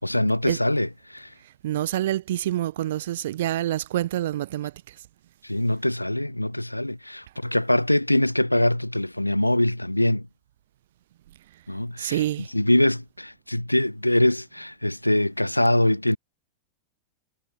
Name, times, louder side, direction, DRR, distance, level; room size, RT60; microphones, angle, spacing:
voice 1, 0.0-1.3 5.4-10.2 11.7-12.2 12.5-16.2, left 1 dB, 85° left, 3.9 m, -23 dB
voice 2, 1.6-5.0 12.0-12.5, right 13 dB, 55° right, 4.0 m, -27 dB
figure-of-eight pair, 90°, 0 cm